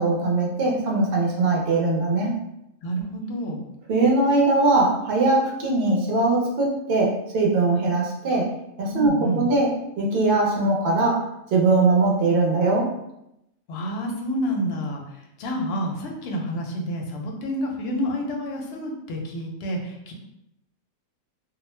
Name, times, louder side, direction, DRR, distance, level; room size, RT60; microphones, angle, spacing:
voice 1, 0.0-2.4 3.9-8.5 8.8-12.9, right 2 dB, 60° right, -2 dB, 0.6 m, -21 dB
voice 2, 2.8-3.6 8.9-9.5 13.7-15.0 15.4-20.1, equal, 65° left, 1 dB, 0.7 m, -28 dB
2.4 x 2.0 x 3.1 m, 0.83 s
omnidirectional pair, 1.5 m